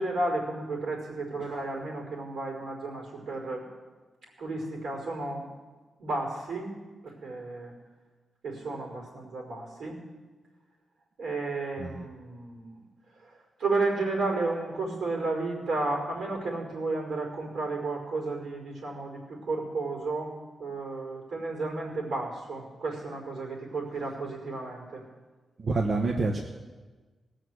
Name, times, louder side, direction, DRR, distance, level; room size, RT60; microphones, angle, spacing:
voice 1, 0.0-3.6 4.4-5.5 6.0-6.8 7.0-7.7 8.4-10.0 11.2-12.8 13.2-20.3 20.6-25.0, right 3 dB, 80° right, 0 dB, 5.1 m, -32 dB
voice 2, 25.6-26.4, right 3 dB, 50° right, 1 dB, 1.2 m, -28 dB
19.0 x 6.5 x 7.9 m, 1.3 s
cardioid pair, 105°, 0 cm